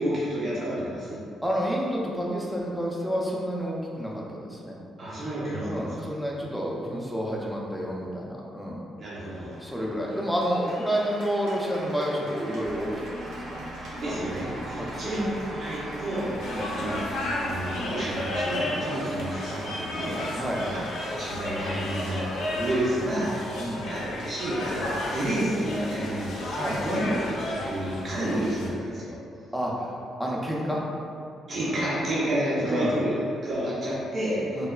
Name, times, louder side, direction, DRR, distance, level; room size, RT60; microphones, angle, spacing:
voice 1, 0.0-1.2 5.0-6.1 9.0-9.5 13.9-16.3 16.7-17.1 17.4-20.3 20.7-23.4 23.9-29.2 31.5-34.7, right 1 dB, 50° right, -8 dB, 0.6 m, -30 dB
voice 2, 1.4-4.8 5.6-8.8 9.6-13.2 13.4-13.6 14.0-14.3 14.7-15.2 16.5-16.8 20.3-20.8 23.6-23.9 26.5-27.2 28.2-28.4 29.5-30.8 32.6-32.9 34.6-34.7, equal, ahead, -4 dB, 0.5 m, -30 dB
Cheering / Applause, 9.1-28.3, right 1 dB, 90° right, 0.6 m, -42 dB
sound 1, 12.6-20.5, equal, 30° left, 0.7 m, -44 dB
sound 2, 16.4-28.7, left 1 dB, 80° left, 0.4 m, -33 dB
3.0 x 2.0 x 2.3 m, 2.4 s
cardioid pair, 90°, 0 cm